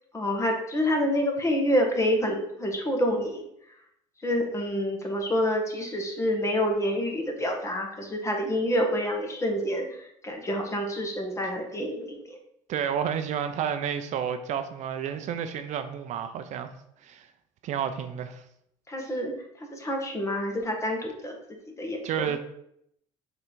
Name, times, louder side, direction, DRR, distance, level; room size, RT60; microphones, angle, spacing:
voice 1, 0.1-3.5 4.2-12.4 18.9-19.3 19.6-21.4 21.8-22.3, equal, 20° left, 2 dB, 1.7 m, -27 dB
voice 2, 12.7-16.7 17.0-17.3 17.6-18.4 22.0-22.4, right 8 dB, 60° right, 9 dB, 0.6 m, -30 dB
6.5 x 3.9 x 4.7 m, 0.75 s
cardioid pair, 105°, 14 cm